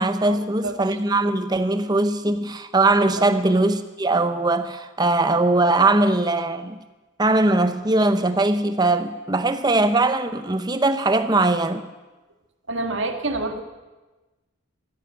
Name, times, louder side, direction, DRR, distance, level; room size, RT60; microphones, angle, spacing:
voice 1, 0.0-6.8 7.2-11.8, right 2 dB, 20° right, 0.7 m, -20 dB
voice 2, 12.7-13.6, right 2 dB, 65° right, 1.6 m, -27 dB
14.0 x 10.5 x 8.8 m
head